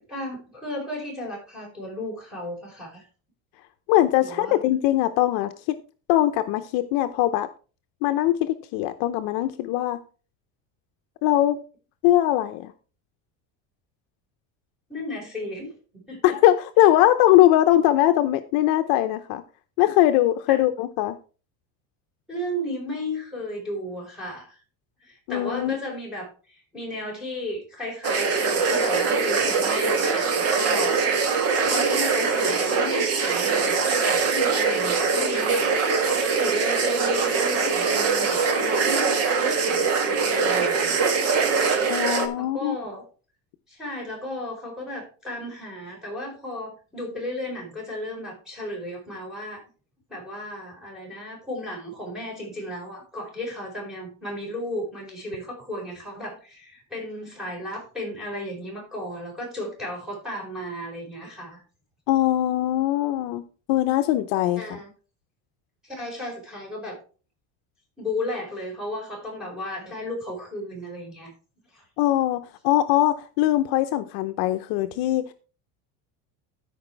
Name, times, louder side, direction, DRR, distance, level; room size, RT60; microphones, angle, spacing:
voice 1, 0.1-3.1 4.2-4.6 14.9-16.3 20.5-20.7 22.3-24.6 25.0-31.3 31.7-41.0 42.4-43.0 43.7-49.6 50.1-61.6 64.6-64.9 65.8-67.0 68.0-71.3 71.7-71.8, left 1 dB, ahead, 4.8 m, -34 dB
voice 2, 3.9-5.8 6.1-7.5 8.0-10.0 11.2-11.6 12.0-12.7 16.2-19.4 19.8-21.2 25.3-25.8 41.9-42.8 62.1-64.6 72.0-75.2, left 14 dB, 60° left, 0.8 m, -21 dB
sound 1, 28.0-42.3, right 5 dB, 40° right, 1.5 m, -22 dB
13.0 x 5.4 x 4.6 m
cardioid pair, 170°, 39 cm